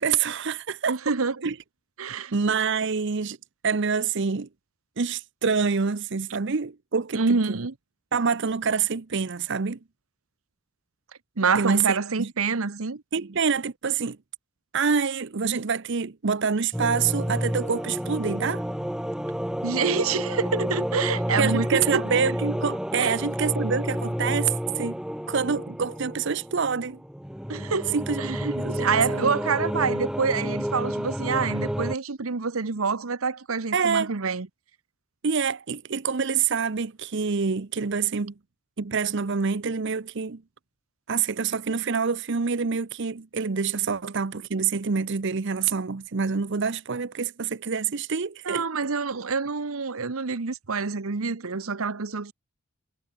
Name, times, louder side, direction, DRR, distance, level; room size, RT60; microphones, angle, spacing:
voice 1, 0.0-1.0 1.4-1.5 2.3-3.4 3.6-4.5 5.0-7.4 8.1-9.8 11.5-12.3 13.1-14.2 14.7-18.6 21.4-25.0 25.3-27.0 27.9-29.3 33.7-34.1 35.2-38.3 38.8-40.4 41.1-48.7, right 5 dB, 60° right, 0.7 m, -26 dB
voice 2, 0.9-1.5 2.0-2.3 7.1-7.7 11.4-13.0 19.6-22.2 23.0-23.1 27.5-34.5 48.4-52.3, right 5 dB, 90° right, 1.0 m, -27 dB
sound 1, 16.7-31.9, equal, 5° right, 0.8 m, -30 dB
head